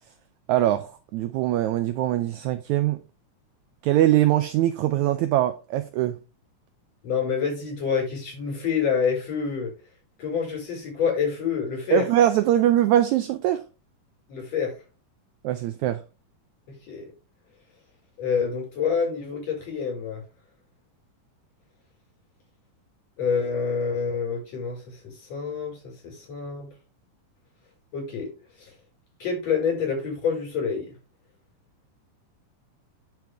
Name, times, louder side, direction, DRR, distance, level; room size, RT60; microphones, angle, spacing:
voice 1, 0.5-3.0 3.8-6.2 11.9-13.6 15.4-16.0, right 13 dB, 85° right, 1.7 m, -22 dB
voice 2, 7.0-9.7 10.2-12.1 14.3-14.8 16.7-17.1 18.2-20.2 23.2-26.7 27.9-28.3 28.6-28.7 29.2-30.9, left 6 dB, 50° left, 6.5 m, -27 dB
10.0 x 5.3 x 3.4 m
omnidirectional pair, 3.8 m